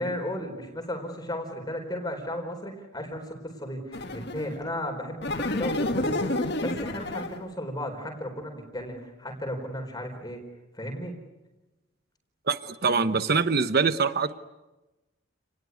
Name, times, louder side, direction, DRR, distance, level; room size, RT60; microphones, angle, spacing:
voice 1, 0.0-10.4 10.7-11.1, equal, 20° left, 3 dB, 4.5 m, -35 dB
sound 1, 3.9-4.6 5.2-7.5, left 2 dB, 55° left, 1.8 m, -29 dB
voice 2, 12.5-14.4, right 4 dB, 50° right, 11 dB, 1.0 m, -24 dB
29.5 x 20.0 x 9.6 m, 1.1 s
head